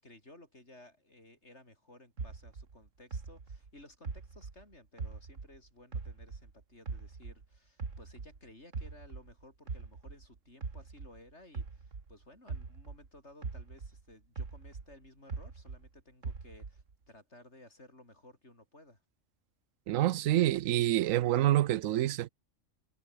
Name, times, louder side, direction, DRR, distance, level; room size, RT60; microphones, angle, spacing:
voice 1, 0.0-19.0, left 1 dB, 60° left, 7.8 m, -57 dB
sound 1, 2.2-5.6 5.9-8.4 8.7-13.1 13.4-15.9 16.2-16.9, right 4 dB, 70° right, 2.6 m, -41 dB
voice 2, 19.9-22.3, right 14 dB, 90° right, 1.0 m, -27 dB
omnidirectional pair, 1.3 m